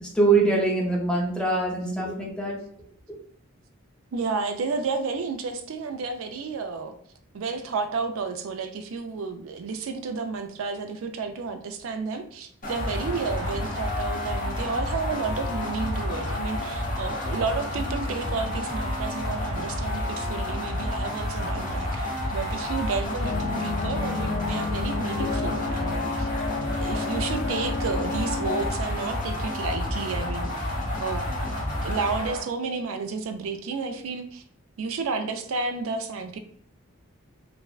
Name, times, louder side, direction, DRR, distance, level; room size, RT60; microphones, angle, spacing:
voice 1, 0.0-2.6, right 3 dB, 5° left, -2 dB, 0.5 m, -23 dB
voice 2, 4.1-7.0 7.3-26.3 26.7-30.7 31.0-31.4 31.8-34.4 34.8-36.4, right 4 dB, 75° right, 7 dB, 0.4 m, -31 dB
sound 1, 12.6-32.4, left 1 dB, 40° left, 0.9 m, -30 dB
sound 2, 23.2-28.7, left 5 dB, 85° left, 0.3 m, -32 dB
3.3 x 2.1 x 2.4 m, 0.64 s
head